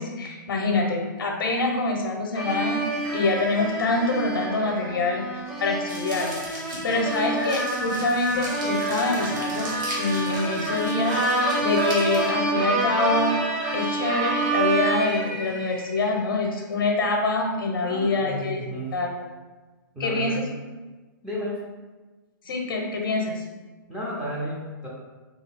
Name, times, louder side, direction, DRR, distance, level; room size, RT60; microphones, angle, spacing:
voice 1, 0.0-5.2 5.6-13.4 13.7-18.6 18.9-19.1 20.0-20.4 22.4-23.4, left 3 dB, 85° left, 2 dB, 0.6 m, -25 dB
sound 1, 2.3-16.0, right 2 dB, 30° right, 1.3 m, -27 dB
sound 2, 5.9-12.3, right 1 dB, 60° right, 0.9 m, -38 dB
voice 2, 17.8-18.9 19.9-20.4 21.2-21.7 23.9-24.9, equal, 5° right, -7 dB, 0.4 m, -33 dB
2.7 x 2.3 x 3.3 m, 1.3 s
hypercardioid pair, 160°, 11 cm